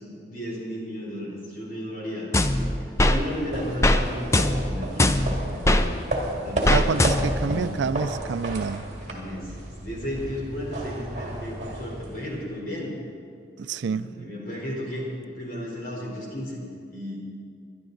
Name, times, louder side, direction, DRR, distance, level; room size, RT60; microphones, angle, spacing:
voice 1, 0.0-6.9 7.4-7.7 9.0-9.6 9.8-13.0 13.8-17.2, equal, 50° left, 3.8 m, -34 dB
sound 1, 2.3-3.2 3.8-4.0 4.3-5.9 6.7-7.5, left 1 dB, 15° left, 0.5 m, -21 dB
sound 2, 2.9-12.5, right 1 dB, 35° right, 2.1 m, -33 dB
voice 2, 6.7-8.9 13.6-14.3, right 5 dB, 75° right, 0.4 m, -28 dB
22.5 x 11.5 x 3.9 m
head